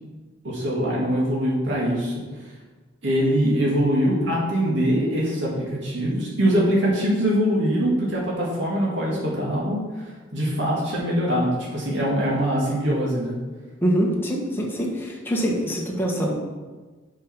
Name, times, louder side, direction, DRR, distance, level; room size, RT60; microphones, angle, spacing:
voice 1, 0.4-2.1 3.0-9.8 10.3-13.4, equal, 65° right, -5 dB, 2.2 m, -23 dB
voice 2, 13.8-16.3, equal, 10° left, -2 dB, 1.5 m, -24 dB
7.4 x 5.5 x 6.2 m, 1.3 s
head